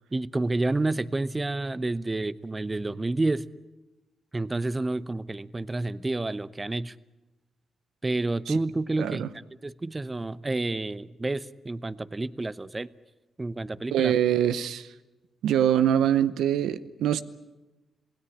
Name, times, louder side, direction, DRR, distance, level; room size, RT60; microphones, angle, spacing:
voice 1, 0.1-3.5 4.3-6.9 8.0-9.3 9.6-12.9 13.4-14.1, right 2 dB, 25° right, 0.8 m, -29 dB
voice 2, 9.0-9.3 13.9-14.9 15.4-17.2, right 10 dB, 90° right, 0.8 m, -24 dB
27.5 x 17.0 x 9.8 m
cardioid pair, 65°, 0 cm